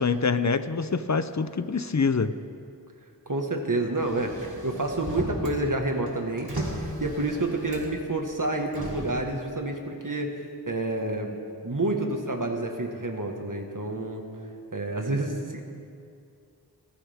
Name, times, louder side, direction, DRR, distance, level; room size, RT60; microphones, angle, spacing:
voice 1, 0.0-2.3, left 5 dB, 45° left, 12 dB, 0.6 m, -25 dB
voice 2, 3.2-11.4 11.6-14.2 14.7-15.6, right 2 dB, 50° right, 3 dB, 1.7 m, -29 dB
Motor vehicle (road), 4.0-5.6 5.9-8.1 8.7-9.1, right 1 dB, 70° right, 3.2 m, -35 dB
20.5 x 15.0 x 3.6 m, 2.4 s
wide cardioid pair, 40°, 40 cm